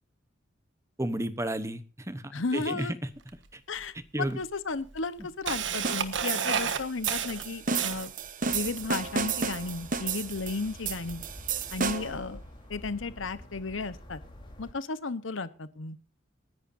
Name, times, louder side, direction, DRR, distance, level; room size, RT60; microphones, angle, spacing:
voice 1, 1.0-2.2 2.5-3.0 3.5-3.6 4.1-4.4, right 1 dB, 15° right, 12 dB, 0.9 m, -32 dB
voice 2, 2.3-2.9 3.7-8.1 8.5-11.2 11.7-12.4 12.7-14.2 14.6-16.0, left 3 dB, 90° left, 14 dB, 1.0 m, -34 dB
Camera, 3.3-3.4 4.3-4.4 4.8-8.3, right 7 dB, 70° right, 1.3 m, -31 dB
sound 1, 5.8-12.2, right 5 dB, 45° right, 1.0 m, -32 dB
sound 2, 8.4-14.7, left 1 dB, 25° left, 3.7 m, -47 dB
28.5 x 11.0 x 2.7 m, 0.32 s
head